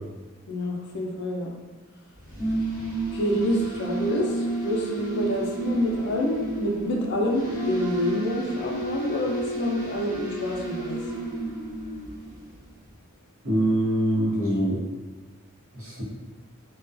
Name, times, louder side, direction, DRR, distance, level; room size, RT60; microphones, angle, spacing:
voice 1, 0.5-1.5 3.1-11.2, left 1 dB, 50° left, -1 dB, 0.4 m, -27 dB
sound 1, 2.2-12.6, right 2 dB, 15° right, 1.0 m, -31 dB
voice 2, 13.4-14.8 15.7-16.0, right 1 dB, 65° right, -7 dB, 0.9 m, -24 dB
2.2 x 2.1 x 2.5 m, 1.2 s
head